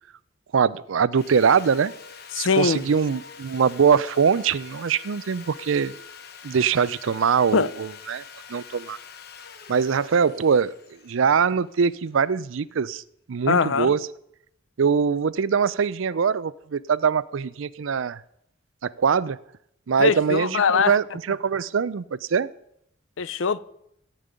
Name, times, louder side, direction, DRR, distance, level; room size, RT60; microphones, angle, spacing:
voice 1, 0.5-1.9 2.3-5.9 6.4-8.2 8.5-9.0 9.7-13.0 13.3-14.1 14.8-18.2 18.8-19.4 19.9-22.5, right 6 dB, 80° right, 0.5 m, -22 dB
Sawing, 1.1-12.2, left 6 dB, 50° left, 1.0 m, -45 dB
voice 2, 2.3-2.8 7.5-7.7 13.5-13.9 20.0-21.0 23.2-23.6, left 5 dB, 75° left, 0.5 m, -21 dB
16.0 x 5.3 x 8.9 m
head